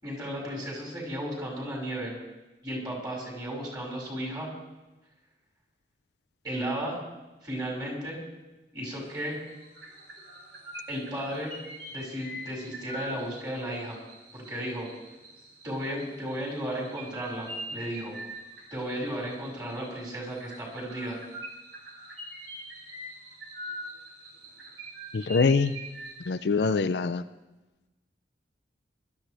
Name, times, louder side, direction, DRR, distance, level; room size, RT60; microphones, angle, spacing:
voice 1, 0.0-2.1 2.6-4.5 6.4-7.0 7.4-8.2 8.7-9.4 10.9-11.5 11.9-14.0 14.3-14.9 15.6-18.2 18.7-21.2, equal, 20° right, -4 dB, 5.2 m, -34 dB
sound 1, 8.9-9.2 9.5-26.3, right 1 dB, 80° right, 4.4 m, -44 dB
voice 2, 25.1-25.7 26.3-27.2, left 4 dB, 65° left, 12 dB, 0.5 m, -24 dB
21.5 x 13.0 x 3.4 m, 1.1 s
head